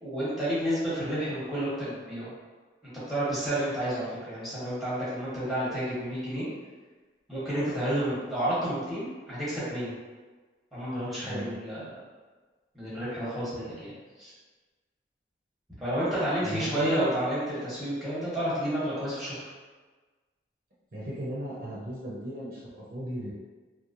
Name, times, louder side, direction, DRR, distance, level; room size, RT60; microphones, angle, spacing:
voice 1, 0.0-2.3 2.8-6.5 7.3-9.9 10.7-12.0 12.7-14.3 15.8-19.5, right 1 dB, ahead, -11 dB, 0.9 m, -30 dB
voice 2, 16.4-17.1 20.9-23.3, right 1 dB, 50° right, -7 dB, 0.6 m, -36 dB
2.9 x 2.0 x 2.5 m, 1.3 s
head